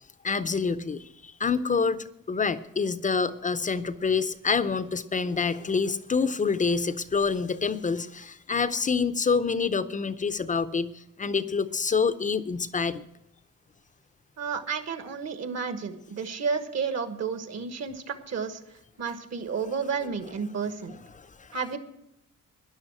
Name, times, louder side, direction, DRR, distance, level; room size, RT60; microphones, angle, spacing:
voice 1, 0.2-13.0 21.2-21.5, left 5 dB, 25° left, 12 dB, 0.6 m, -27 dB
voice 2, 14.4-18.6 19.0-21.0 21.5-21.8, right 5 dB, 50° right, 10 dB, 1.4 m, -31 dB
13.0 x 10.5 x 6.1 m, 0.82 s
wide cardioid pair, 160°, 33 cm